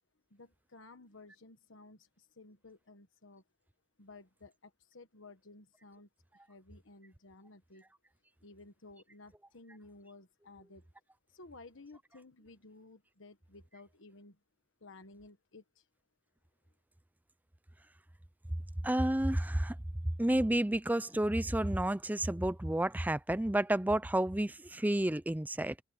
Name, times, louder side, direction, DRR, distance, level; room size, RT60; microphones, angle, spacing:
voice 1, 0.3-3.4 4.0-6.1 6.5-7.8 8.4-10.9 11.3-14.4 14.8-15.8, left 3 dB, 65° left, 1.3 m, -55 dB
voice 2, 18.8-19.8 20.2-25.8, right 1 dB, 10° right, 0.5 m, -30 dB
head